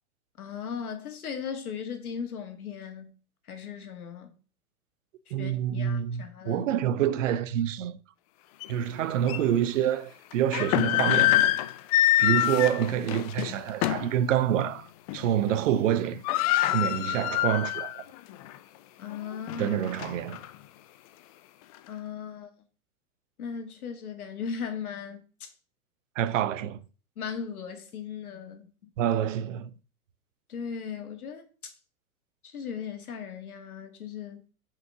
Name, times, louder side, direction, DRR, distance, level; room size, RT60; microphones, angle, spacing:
voice 1, 0.4-3.1 3.4-4.3 5.3-6.7 19.0-19.8 21.9-22.5 23.4-25.5 27.2-28.9 30.5-31.7 32.4-34.4, left 6 dB, 75° left, 2.2 m, -37 dB
voice 2, 5.3-8.0 8.7-11.3 12.2-14.9 15.1-16.2 16.7-17.9 19.6-20.4 26.2-26.8 29.0-29.7, right 10 dB, 55° right, 0.9 m, -27 dB
sound 1, 8.6-8.7 9.3-9.4 10.3-14.2 14.6-14.7 15.1-15.5 15.8-15.9 16.0-18.0 18.4-18.5 19.1-20.5, left 14 dB, 25° left, 0.4 m, -25 dB
6.2 x 4.9 x 6.8 m
hypercardioid pair, 115°, 44 cm